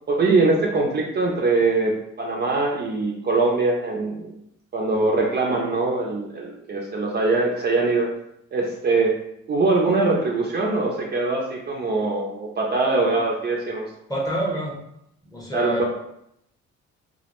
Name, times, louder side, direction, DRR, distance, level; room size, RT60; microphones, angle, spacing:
voice 1, 0.1-4.3 4.7-8.1 8.5-9.2 9.5-13.8 15.5-15.8, right 3 dB, 35° right, -1 dB, 0.4 m, -22 dB
voice 2, 14.1-14.8 15.2-15.8, right 1 dB, 10° left, -3 dB, 0.7 m, -27 dB
2.2 x 2.1 x 2.9 m, 0.78 s
cardioid pair, 90°, 30 cm